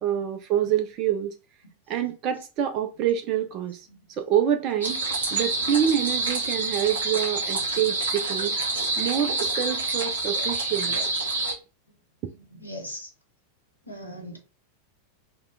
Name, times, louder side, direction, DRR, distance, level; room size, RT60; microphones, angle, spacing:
voice 1, 0.0-1.4 1.9-5.0 5.3-8.6 9.0-11.0, right 10 dB, 35° right, 0.4 m, -26 dB
sound 1, 4.8-11.5, right 3 dB, 70° right, 0.7 m, -27 dB
voice 2, 12.2-13.1 13.8-14.4, equal, 85° left, 0.9 m, -39 dB
2.7 x 2.2 x 3.8 m
figure-of-eight pair, 90°, 0 cm